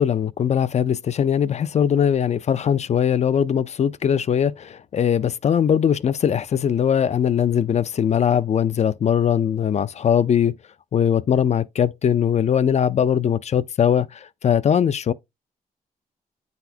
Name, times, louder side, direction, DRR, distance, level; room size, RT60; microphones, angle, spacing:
voice 1, 0.0-10.6 10.9-15.1, left 8 dB, 45° left, 0.4 m, -20 dB
8.8 x 4.1 x 2.7 m
cardioid pair, 95°, 15 cm